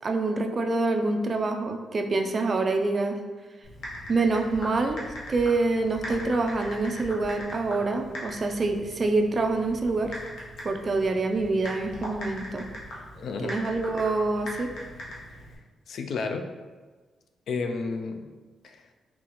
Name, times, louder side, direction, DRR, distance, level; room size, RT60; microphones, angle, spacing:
voice 1, 0.0-3.2 4.1-5.0 5.3-10.1 10.6-12.7 13.4-14.7, right 3 dB, 30° right, 4 dB, 0.3 m, -26 dB
Typing, 3.6-15.6, left 1 dB, 75° left, 1.0 m, -41 dB
voice 2, 13.2-13.5 15.3-15.4 15.9-16.5 17.5-18.3 18.6-18.8, left 4 dB, 60° left, 5 dB, 0.3 m, -32 dB
3.9 x 3.4 x 2.9 m, 1.3 s
wide cardioid pair, 175°, 0 cm